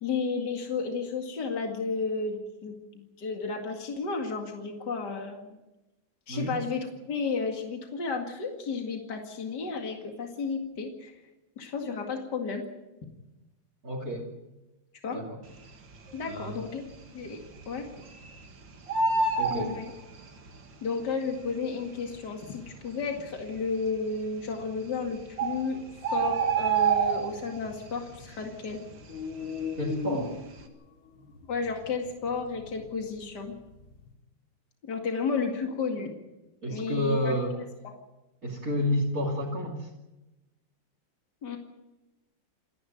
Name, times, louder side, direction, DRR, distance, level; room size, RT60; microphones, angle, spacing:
voice 1, 0.0-5.6 6.3-11.1 11.6-12.6 15.0-15.2 16.1-16.8 17.1-17.4 17.7-17.9 19.5-19.8 20.8-25.8 26.1-28.8 31.5-33.5 34.8-36.1 36.7-37.4 41.4-41.6, left 4 dB, 60° left, 2 dB, 2.8 m, -32 dB
voice 2, 13.8-14.3 15.1-15.4 16.2-16.6 19.4-19.7 29.8-30.4 36.6-37.6 38.4-39.9, equal, 45° right, -4 dB, 3.3 m, -30 dB
Bird, 16.0-16.6 16.9-17.0 17.2-18.4 18.7-20.5 21.4-21.5 22.1-22.2 22.4-22.5 23.2-23.6 24.6-24.7 25.0-25.1 25.4-27.7 28.0-28.3 28.6-30.0 30.3-30.6, right 5 dB, 70° right, 2.6 m, -27 dB
sound 1, 26.0-28.6 28.9-34.1, left 6 dB, 80° left, 3.2 m, -40 dB
29.0 x 11.0 x 9.4 m, 1.0 s
omnidirectional pair, 2.1 m